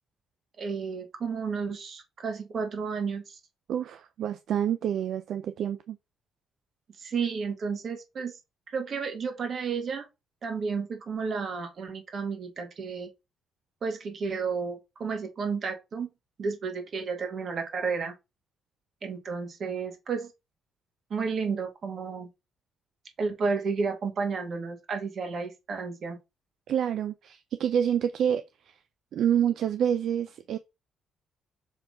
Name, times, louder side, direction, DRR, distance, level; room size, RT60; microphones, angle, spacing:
voice 1, 0.6-3.4 7.0-8.4 8.7-10.1 10.4-13.1 13.8-16.1 16.4-18.1 19.0-20.3 21.1-22.3 23.2-26.2, right 5 dB, 50° right, 2.0 m, -32 dB
voice 2, 3.7-6.0 26.7-28.8 29.1-30.6, right 9 dB, 70° right, 0.5 m, -28 dB
6.4 x 3.4 x 5.1 m
cardioid pair, 90°, 0 cm